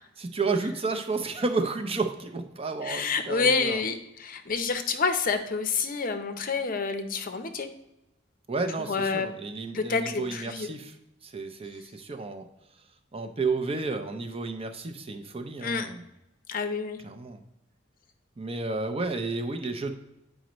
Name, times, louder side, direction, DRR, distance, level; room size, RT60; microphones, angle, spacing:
voice 1, 0.2-3.8 8.5-11.0 11.2-12.5 13.1-16.0 17.0-17.4 18.4-20.0, right 3 dB, 30° right, 6 dB, 0.6 m, -31 dB
voice 2, 2.8-7.7 8.9-9.3 9.7-10.7 15.6-15.9 16.5-17.0, left 4 dB, 45° left, 7 dB, 0.6 m, -28 dB
8.9 x 5.1 x 3.0 m, 0.88 s
head